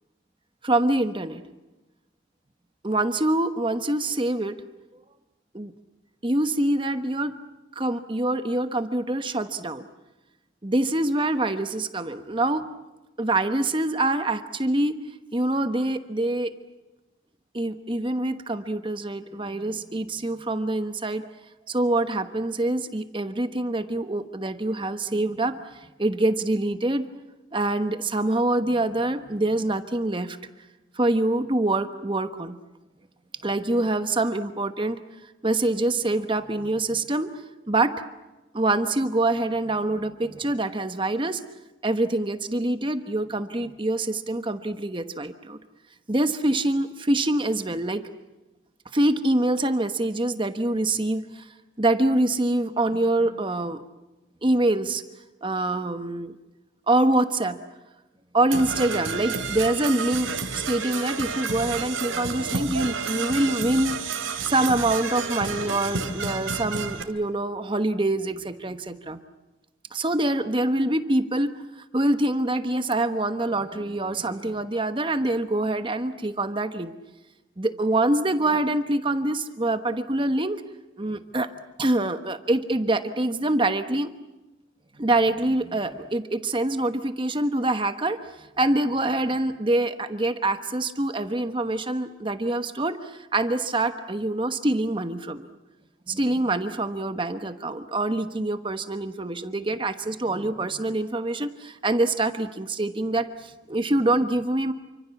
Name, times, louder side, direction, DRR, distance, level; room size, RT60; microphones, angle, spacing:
voice 1, 0.6-1.4 2.8-4.6 5.5-5.7 6.2-7.4 7.7-9.8 10.6-12.7 13.2-15.0 15.3-16.5 17.5-21.2 21.7-27.1 27.5-30.4 30.9-32.6 33.4-35.0 35.4-37.3 37.7-37.9 38.5-41.4 41.8-45.6 46.1-48.0 48.9-51.5 51.8-53.8 54.4-55.0 55.4-56.3 56.9-57.6 58.3-64.0 64.4-69.2 69.9-76.9 77.6-80.6 81.0-81.5 81.8-84.1 85.0-95.5 96.1-104.7, right 2 dB, 25° right, 9 dB, 1.2 m, -25 dB
Percussion / Brass instrument, 58.5-67.0, right 5 dB, 85° right, 3.1 m, -30 dB
28.5 x 25.5 x 7.2 m, 1.0 s
head